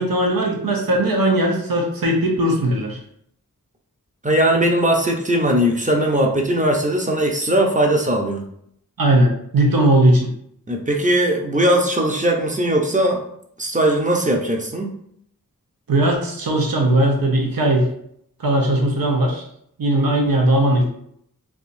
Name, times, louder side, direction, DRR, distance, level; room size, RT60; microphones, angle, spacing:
voice 1, 0.0-3.0 9.0-10.3 15.9-17.9 18.4-19.4 19.8-20.9, right 1 dB, 85° right, 0 dB, 0.8 m, -18 dB
voice 2, 4.2-8.4 10.7-13.2 13.6-14.9, right 1 dB, 20° right, 1 dB, 0.6 m, -19 dB
3.4 x 2.6 x 2.6 m, 0.70 s
wide cardioid pair, 65°, 34 cm